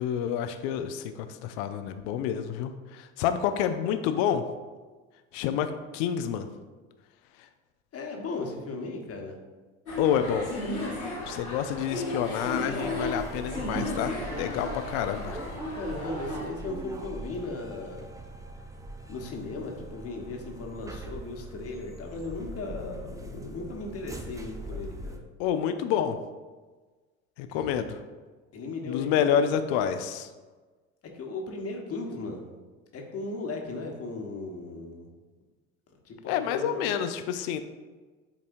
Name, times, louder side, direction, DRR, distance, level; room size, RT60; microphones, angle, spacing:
voice 1, 0.0-4.4 5.3-6.5 7.4-7.5 10.0-10.5 11.3-15.4 25.4-26.2 27.4-28.0 28.9-30.3 36.3-37.6, left 9 dB, 55° left, 9 dB, 0.7 m, -28 dB
voice 2, 7.9-9.4 15.8-18.1 19.1-25.2 27.5-27.7 28.5-29.5 31.1-32.5 32.9-35.1 36.0-36.8, left 3 dB, 35° left, 1 dB, 1.3 m, -37 dB
sound 1, 9.9-16.5, left 1 dB, 85° left, 1.9 m, -34 dB
sound 2, 12.8-25.2, right 1 dB, 10° right, 0.6 m, -40 dB
11.0 x 4.2 x 2.6 m, 1.3 s
figure-of-eight pair, 65°, 42 cm